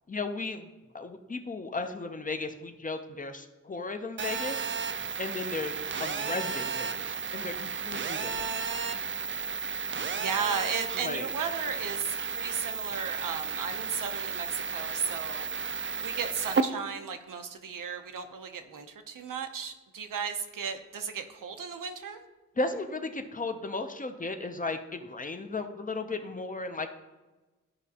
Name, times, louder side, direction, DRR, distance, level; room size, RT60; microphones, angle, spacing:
voice 1, 0.1-0.7 0.9-4.7 5.2-7.1 7.3-8.3 10.9-11.3 22.6-26.9, left 3 dB, 25° left, 6 dB, 0.5 m, -35 dB
Telephone, 4.2-16.6, right 5 dB, 40° right, 0.4 m, -33 dB
voice 2, 10.2-15.5 16.0-22.2, right 6 dB, 90° right, 6 dB, 0.7 m, -35 dB
12.5 x 5.0 x 2.8 m, 1.2 s
wide cardioid pair, 150°, 31 cm